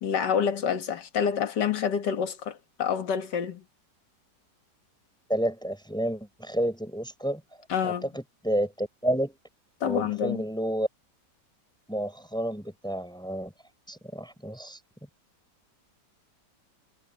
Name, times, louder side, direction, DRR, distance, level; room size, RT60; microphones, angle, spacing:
voice 1, 0.0-3.6 7.7-8.1 9.8-10.4, left 7 dB, 75° left, 1.9 m, -27 dB
voice 2, 5.3-7.4 7.8-9.4 9.8-10.9 11.9-13.5 13.9-14.8, right 1 dB, ahead, 5.9 m, -30 dB
omnidirectional pair, 1.9 m